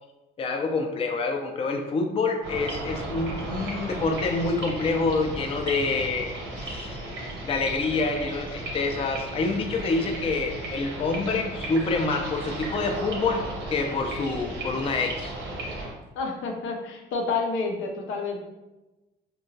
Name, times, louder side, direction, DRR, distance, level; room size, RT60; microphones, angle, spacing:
voice 1, 0.4-7.0 7.4-15.3, left 3 dB, 30° left, 3 dB, 0.3 m, -27 dB
sound 1, 2.4-15.9, right 1 dB, 75° right, 0.8 m, -35 dB
voice 2, 16.2-18.4, left 4 dB, 85° left, 2 dB, 0.5 m, -29 dB
2.8 x 2.2 x 2.6 m, 1.1 s
cardioid pair, 90°, 20 cm